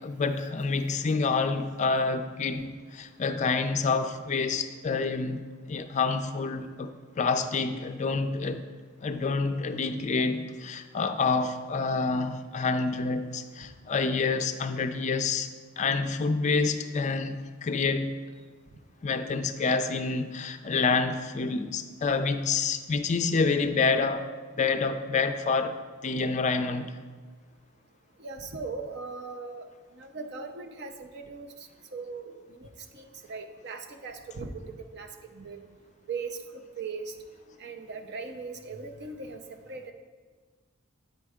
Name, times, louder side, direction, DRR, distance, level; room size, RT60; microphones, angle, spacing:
voice 1, 0.0-5.4 5.7-8.6 9.0-18.1 19.0-24.3 24.6-25.8 26.0-26.9, left 4 dB, 35° left, 9 dB, 0.4 m, -28 dB
voice 2, 28.2-29.7 29.9-31.5 31.9-35.7 36.1-37.1 37.6-39.9, right 4 dB, 55° right, 5 dB, 0.6 m, -39 dB
9.0 x 4.5 x 4.9 m, 1.5 s
head